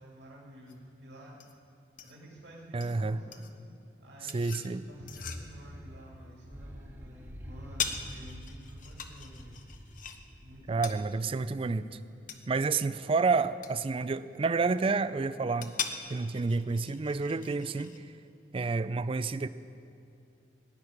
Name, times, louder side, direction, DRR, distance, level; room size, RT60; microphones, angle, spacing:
voice 1, 0.0-1.5 2.0-3.5 4.0-9.5 10.4-11.3, equal, 70° right, -4 dB, 2.4 m, -50 dB
sound 1, 0.7-18.0, left 6 dB, 50° left, 0.9 m, -43 dB
voice 2, 2.7-3.2 4.2-4.8 10.7-11.9 12.5-15.7 16.1-17.9 18.5-19.5, right 4 dB, 30° right, 14 dB, 0.4 m, -29 dB
sound 2, 4.9-11.2, equal, 10° right, 1.2 m, -47 dB
16.0 x 6.3 x 9.7 m, 2.6 s
head